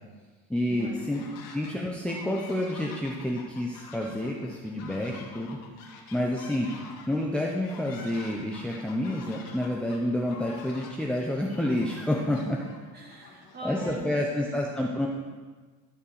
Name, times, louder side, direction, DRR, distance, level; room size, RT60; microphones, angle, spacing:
voice 1, 0.5-1.2 1.5-5.6 6.1-6.7 7.1-12.4 13.6-15.1, left 1 dB, 5° left, -2 dB, 0.8 m, -29 dB
sound 1, 0.8-1.8 2.1-14.4, left 4 dB, 70° left, 1.8 m, -48 dB
voice 2, 12.2-14.6, right 2 dB, 30° right, -2 dB, 2.6 m, -41 dB
13.0 x 4.4 x 6.8 m, 1.4 s
cardioid pair, 125°, 34 cm